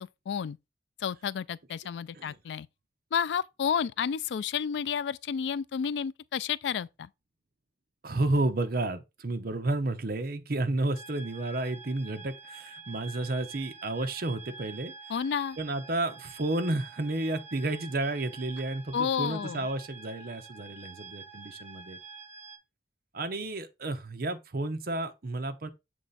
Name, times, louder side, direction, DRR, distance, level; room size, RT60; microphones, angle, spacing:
voice 1, 0.3-0.6 1.0-2.7 3.1-7.1 15.1-15.6 18.9-19.7, left 7 dB, 80° left, 0.3 m, -31 dB
voice 2, 8.0-14.9 15.6-22.0 23.1-25.7, right 2 dB, 55° right, 0.8 m, -31 dB
sound 1, 10.9-22.6, right 4 dB, 10° right, 1.7 m, -47 dB
7.2 x 3.3 x 4.0 m
head